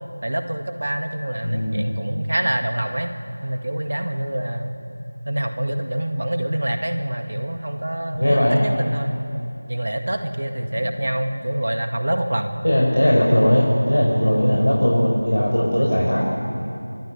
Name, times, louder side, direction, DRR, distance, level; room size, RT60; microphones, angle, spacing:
voice 1, 0.2-3.1 3.4-4.8 5.3-9.1 9.7-12.5 13.1-13.3 14.2-14.5, right 1 dB, 50° right, 6 dB, 1.8 m, -26 dB
voice 2, 1.4-1.9 8.1-8.6 12.6-16.2, equal, 90° left, -4 dB, 5.6 m, -18 dB
24.5 x 14.5 x 8.3 m, 2.6 s
figure-of-eight pair, 175°, 0 cm